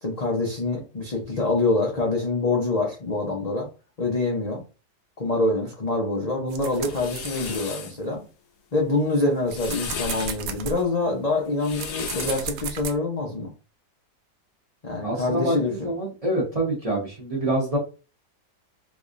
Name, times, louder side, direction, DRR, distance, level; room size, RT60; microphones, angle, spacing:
voice 1, 0.0-3.7 4.0-4.6 5.2-8.2 8.7-13.5 14.8-15.9, left 2 dB, 45° left, -2 dB, 0.5 m, -25 dB
sound 1, 6.5-8.3 8.8-12.9, right 5 dB, 70° right, 0.9 m, -35 dB
sound 2, 6.6-7.9 9.3-10.4 11.5-12.6, left 6 dB, 75° left, 1.3 m, -35 dB
voice 2, 15.0-17.8, right 1 dB, 25° right, -3 dB, 0.9 m, -26 dB
3.5 x 3.1 x 2.5 m, 0.32 s
omnidirectional pair, 1.8 m